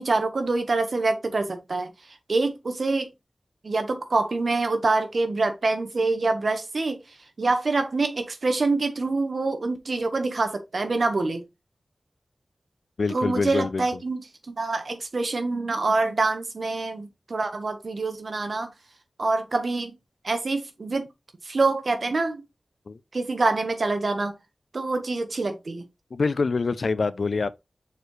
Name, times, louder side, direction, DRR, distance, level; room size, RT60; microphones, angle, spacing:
voice 1, 0.0-1.9 2.3-3.1 3.6-7.0 7.4-11.4 13.1-14.2 14.5-18.7 19.2-19.9 20.2-21.1 21.4-22.4 23.1-24.3 24.7-25.8, right 3 dB, 70° right, 1.3 m, -25 dB
voice 2, 13.0-14.0 22.9-23.0 26.1-27.5, left 4 dB, 80° left, 0.5 m, -25 dB
6.5 x 4.7 x 3.2 m
wide cardioid pair, 60°, 0 cm